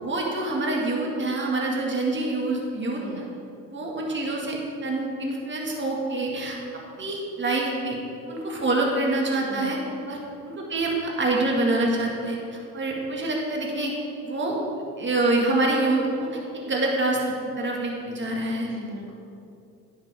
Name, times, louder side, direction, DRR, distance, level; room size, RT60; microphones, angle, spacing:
voice 1, 0.0-3.2 3.7-8.0 8.3-9.8 10.1-10.2 10.5-14.0 14.2-14.6 15.0-18.7, right 2 dB, 35° right, -1 dB, 1.9 m, -26 dB
voice 2, 2.9-3.3 9.4-9.8 18.6-19.1, right 1 dB, 90° right, -1 dB, 1.6 m, -40 dB
10.0 x 7.5 x 3.5 m, 2.6 s
supercardioid pair, 85°, 35 cm